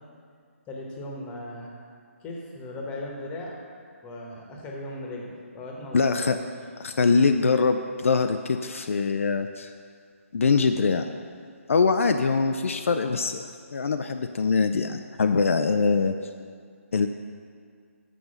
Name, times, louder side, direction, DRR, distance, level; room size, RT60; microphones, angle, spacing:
voice 1, 0.7-1.7 2.2-3.6 4.0-6.5, left 1 dB, 15° left, -1 dB, 1.2 m, -37 dB
voice 2, 5.9-6.4 6.8-9.7 10.3-11.1 11.7-16.1 16.9-17.1, left 4 dB, 65° left, 7 dB, 0.4 m, -23 dB
6.8 x 6.3 x 6.5 m, 2.1 s
figure-of-eight pair, 150°, 8 cm